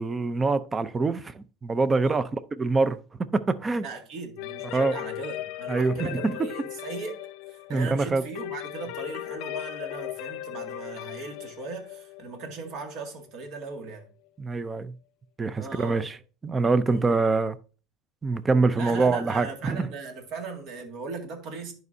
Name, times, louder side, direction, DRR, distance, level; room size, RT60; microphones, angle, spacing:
voice 1, 0.0-2.2 2.6-3.0 3.6-3.9 4.7-4.9 5.7-6.4 7.7-8.2 14.4-14.9 15.4-16.2 16.4-17.6 18.2-19.9, right 3 dB, 15° right, 0.5 m, -25 dB
voice 2, 3.8-7.2 7.5-14.1 15.6-16.1 16.9-17.2 18.8-21.7, right 4 dB, 50° right, 2.1 m, -38 dB
sound 1, 4.4-14.0, left 16 dB, 60° left, 0.6 m, -38 dB
11.0 x 5.3 x 2.7 m
supercardioid pair, 140°, 0 cm